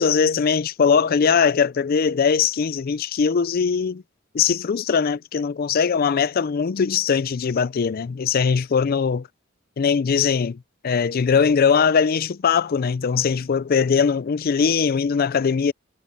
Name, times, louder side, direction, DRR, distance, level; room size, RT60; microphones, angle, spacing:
voice 1, 0.0-4.0 4.3-9.3 9.8-10.6 10.8-15.7, left 6 dB, 50° left, 0.4 m, -20 dB
head